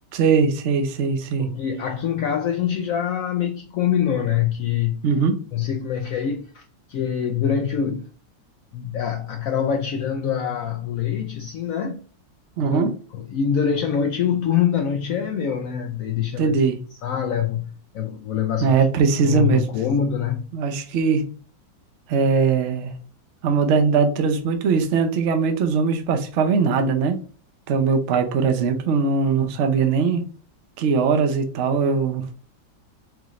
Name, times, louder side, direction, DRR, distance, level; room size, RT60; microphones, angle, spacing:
voice 1, 0.1-1.5 5.0-5.4 12.6-12.9 16.4-16.8 18.6-19.7 20.5-21.3 22.1-22.9 23.4-27.2 27.7-30.3 30.8-32.3, right 5 dB, 60° right, 0.7 m, -20 dB
voice 2, 1.4-5.0 5.5-8.1 8.7-12.0 12.7-16.6 17.0-18.7 19.2-20.4, left 8 dB, 80° left, 0.7 m, -24 dB
4.8 x 3.1 x 2.5 m
omnidirectional pair, 2.0 m